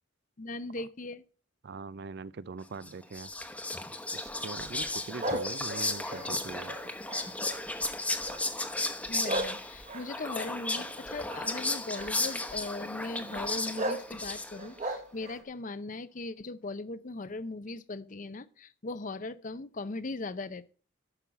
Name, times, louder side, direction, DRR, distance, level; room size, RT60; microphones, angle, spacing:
voice 1, 0.4-1.2 5.3-5.4 6.0-6.3 9.1-20.7, left 2 dB, 40° left, 0.6 m, -39 dB
voice 2, 1.6-3.3 4.1-6.8, right 4 dB, 55° right, 0.4 m, -42 dB
Whispering, 2.8-14.8, left 2 dB, 5° left, 1.0 m, -35 dB
sound 1, 5.2-7.8 8.2-8.6 9.2-11.5 11.9-12.4 13.3-13.4 13.8-14.1 14.5-15.4, right 1 dB, 35° right, 1.2 m, -36 dB
11.5 x 5.6 x 6.1 m
head